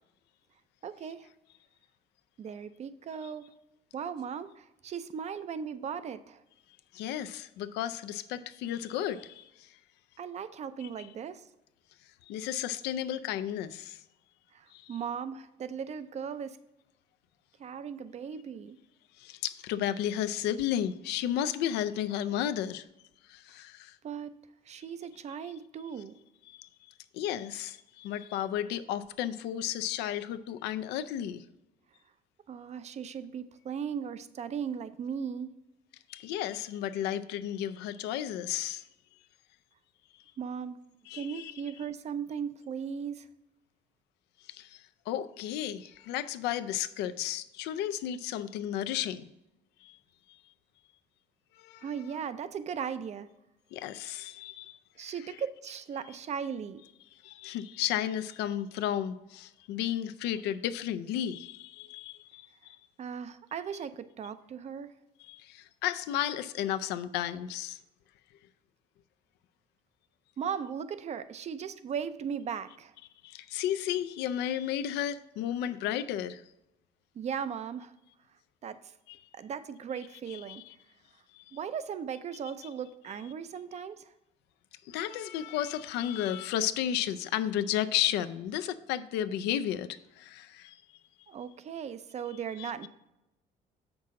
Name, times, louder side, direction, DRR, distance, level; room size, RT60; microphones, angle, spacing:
voice 1, 0.8-1.3 2.4-3.5 3.9-6.4 10.2-11.5 14.5-16.6 17.6-18.8 24.0-24.3 24.7-26.2 32.5-35.5 40.4-40.8 41.1-43.3 51.8-53.3 55.0-56.8 63.0-64.9 70.4-72.9 77.1-77.9 78.6-78.9 79.3-80.6 81.5-84.1 91.3-92.9, right 7 dB, 40° right, 0.5 m, -37 dB
voice 2, 6.9-9.7 10.8-11.1 12.3-14.0 14.7-14.9 19.2-22.8 23.3-24.0 26.5-26.7 27.1-31.4 36.1-38.8 41.1-41.5 44.5-49.3 49.8-50.0 50.3-50.4 51.6-51.9 53.7-55.1 57.2-62.8 65.3-67.8 73.2-76.4 79.1-79.2 80.3-80.7 81.3-81.6 84.9-90.8 92.6-92.7, left 11 dB, 90° left, 0.5 m, -33 dB
7.3 x 6.1 x 3.7 m
cardioid pair, 110°, 17 cm